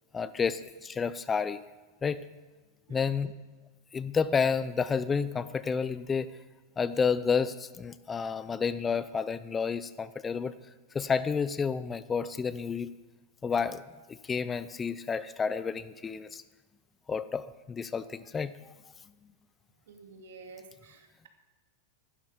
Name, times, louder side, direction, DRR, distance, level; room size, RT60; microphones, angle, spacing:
voice 1, 0.1-1.6 2.0-2.2 2.9-3.3 3.9-6.3 6.8-10.5 10.9-12.9 13.4-13.8 14.1-16.4 17.1-18.5, left 6 dB, 15° left, 15 dB, 0.5 m, -30 dB
voice 2, 2.9-3.3 10.5-10.6 19.9-21.3, right 4 dB, 80° right, 3 dB, 2.6 m, -51 dB
15.0 x 12.0 x 5.1 m, 1.3 s
supercardioid pair, 130°, 0 cm